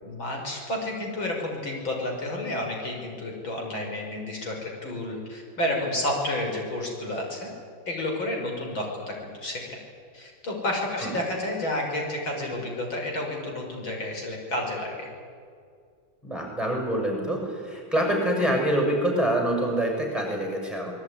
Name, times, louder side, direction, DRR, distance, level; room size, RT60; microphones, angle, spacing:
voice 1, 0.0-7.5 7.9-9.8 10.1-15.1, left 1 dB, 80° left, 0 dB, 6.4 m, -30 dB
voice 2, 16.2-20.9, right 1 dB, ahead, 1 dB, 6.7 m, -26 dB
26.0 x 21.5 x 9.9 m, 2.2 s
omnidirectional pair, 2.1 m